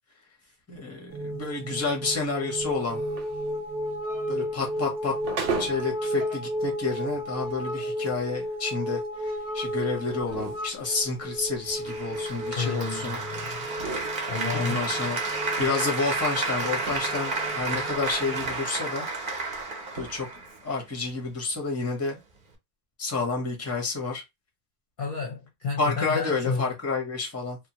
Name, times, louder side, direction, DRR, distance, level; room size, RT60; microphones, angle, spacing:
voice 1, 0.7-3.0 4.3-5.1 5.6-13.2 14.5-15.2 15.6-19.1 19.9-20.3 20.6-22.2 23.0-24.2 25.8-27.6, left 4 dB, 15° left, 0.7 m, -30 dB
sound 1, 1.1-18.5, equal, 20° right, 0.9 m, -34 dB
sound 2, 2.6-6.0 6.4-6.5 7.1-7.2 7.7-13.2 13.5-14.9 15.3-17.3 17.6-18.7 19.1-19.2 19.5-19.6 19.9-20.4, right 5 dB, 80° right, 1.1 m, -39 dB
Applause, 11.9-20.9, right 3 dB, 50° right, 0.9 m, -31 dB
voice 2, 12.6-13.6 14.3-14.9 25.0-26.7, left 5 dB, 55° left, 0.7 m, -31 dB
2.9 x 2.1 x 2.7 m
omnidirectional pair, 1.2 m